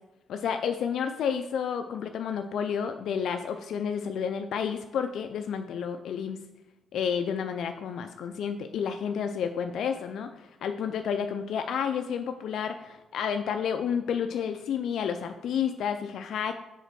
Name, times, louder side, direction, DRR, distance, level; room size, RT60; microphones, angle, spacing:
voice 1, 0.3-6.4 6.9-16.6, left 7 dB, 70° left, 7 dB, 0.4 m, -30 dB
5.4 x 4.2 x 6.0 m, 0.98 s
cardioid pair, 90°, 0 cm